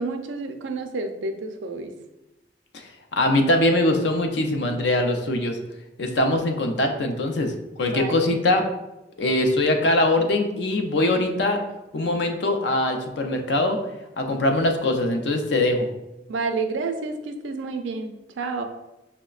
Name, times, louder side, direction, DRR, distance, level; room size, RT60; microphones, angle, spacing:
voice 1, 0.0-1.9 7.9-8.3 16.3-18.6, right 3 dB, 90° right, 6 dB, 0.4 m, -30 dB
voice 2, 2.7-5.6 6.0-8.6 9.2-11.6 11.9-13.8 14.2-15.9, left 1 dB, 70° left, 4 dB, 0.5 m, -22 dB
5.6 x 2.1 x 2.3 m, 0.98 s
head